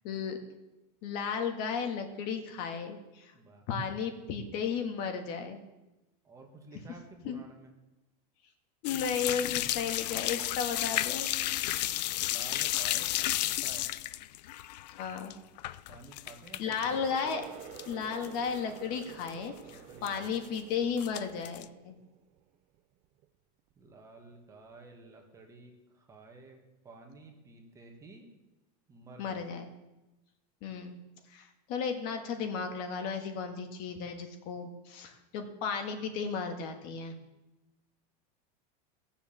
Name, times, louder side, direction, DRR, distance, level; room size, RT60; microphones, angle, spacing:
voice 1, 0.0-0.4 1.0-3.3 3.7-5.6 7.2-7.4 8.8-11.3 11.6-11.9 14.9-15.4 16.6-17.4 17.9-22.0 29.2-29.7 30.6-31.0 31.3-37.2, left 6 dB, 45° left, 5 dB, 1.7 m, -34 dB
voice 2, 3.3-3.7 6.2-7.7 12.2-13.9 15.9-17.0 19.7-20.3 23.8-28.3 28.9-29.4, right 3 dB, 15° right, 2 dB, 1.9 m, -52 dB
sound 1, 8.8-16.9 17.2-17.9 18.2-18.3 18.8-18.9 19.0-19.3 20.1-20.6 21.0-21.6, left 15 dB, 90° left, 0.5 m, -32 dB
Water tap faucet, 16.9-22.4 22.8-23.2 23.7-24.0 24.7-24.8, right 11 dB, 35° right, 0.7 m, -49 dB
17.0 x 7.3 x 7.3 m, 1.0 s
supercardioid pair, 165°, 21 cm